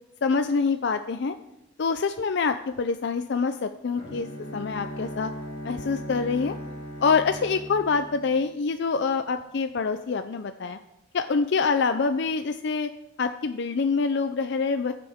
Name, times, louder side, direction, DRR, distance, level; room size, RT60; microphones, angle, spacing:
voice 1, 0.2-1.4 1.8-4.3 4.5-5.3 5.6-6.6 7.0-10.8 11.1-12.9 13.2-14.9, left 5 dB, 60° left, 9 dB, 0.4 m, -25 dB
Bowed string instrument, 4.0-8.9, equal, 35° left, 3.0 m, -38 dB
19.5 x 6.8 x 3.6 m, 0.90 s
head